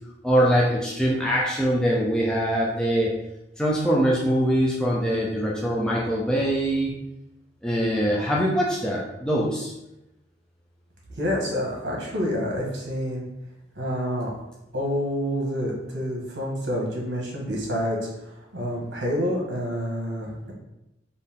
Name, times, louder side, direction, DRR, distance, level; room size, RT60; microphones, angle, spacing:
voice 1, 0.2-3.1 3.6-6.9 7.6-9.7, equal, 5° left, -5 dB, 0.4 m, -23 dB
voice 2, 11.1-13.2 13.7-14.3 14.7-20.5, equal, 70° right, -2 dB, 1.4 m, -28 dB
4.3 x 2.7 x 3.5 m, 0.90 s
head